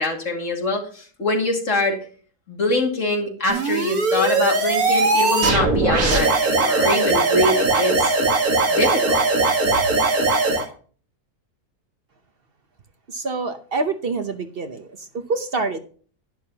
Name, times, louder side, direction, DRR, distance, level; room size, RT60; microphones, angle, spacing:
voice 1, 0.0-2.0 2.5-8.1 8.7-9.2, left 2 dB, 50° left, 2 dB, 2.6 m, -24 dB
sound 1, 3.5-10.6, right 3 dB, 70° right, 2.2 m, -19 dB
voice 2, 13.1-15.8, right 3 dB, 45° right, 8 dB, 0.9 m, -26 dB
11.5 x 10.5 x 2.9 m, 0.42 s
omnidirectional pair, 1.6 m